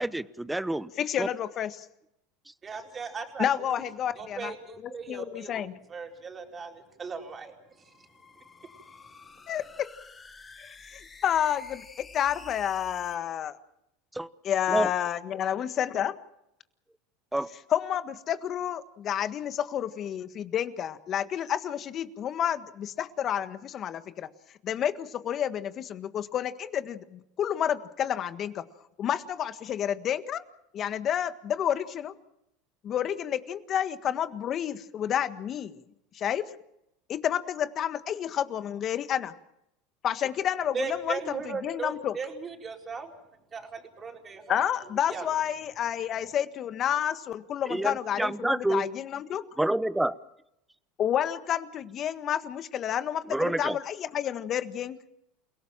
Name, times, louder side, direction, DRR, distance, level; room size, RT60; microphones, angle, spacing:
voice 1, 0.0-0.9 1.2-1.3 14.1-14.3 14.7-14.9 17.3-17.5 47.7-48.9 49.6-50.1 53.2-53.8, right 1 dB, 5° right, 16 dB, 1.0 m, -28 dB
voice 2, 1.0-1.9 3.4-4.5 4.8-5.7 9.5-9.9 10.6-13.6 14.4-16.2 17.7-24.3 24.6-28.6 29.0-30.4 30.7-32.1 32.8-35.8 36.1-36.4 37.1-39.3 40.0-42.1 44.5-49.4 51.0-55.0, left 10 dB, 45° left, 11 dB, 1.6 m, -30 dB
voice 3, 2.6-3.8 4.1-5.6 5.9-8.1 9.0-9.1 40.7-43.1 43.5-44.7 45.1-45.3 46.1-46.3, right 5 dB, 30° right, 2 dB, 4.6 m, -38 dB
sound 1, 7.7-13.1, left 4 dB, 20° left, 5.7 m, -50 dB
29.0 x 17.5 x 7.5 m, 0.81 s
hypercardioid pair, 95°, 0 cm